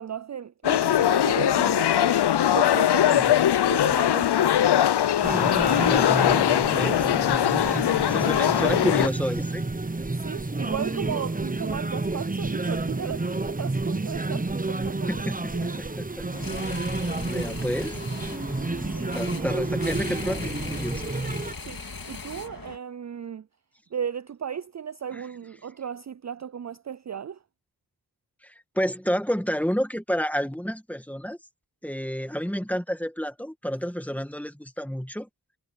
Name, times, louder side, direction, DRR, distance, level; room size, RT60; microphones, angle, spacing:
voice 1, 0.0-2.1 2.5-3.4 3.7-4.6 10.2-15.8 18.9-19.6 21.6-23.5 23.9-27.4, right 8 dB, 45° right, 0.4 m, -35 dB
sound 1, 0.6-9.1, left 10 dB, 90° left, 0.5 m, -21 dB
voice 2, 3.1-3.6 5.9-7.1 8.1-9.6 15.1-16.3 16.5-18.0 19.1-21.0 25.1-25.2 28.4-31.4 31.8-35.3, equal, 5° left, 2.0 m, -30 dB
sound 2, 5.2-21.5, right 2 dB, 20° right, 0.9 m, -30 dB
sound 3, 16.3-22.8, left 4 dB, 60° left, 2.3 m, -38 dB
wide cardioid pair, 60°, 39 cm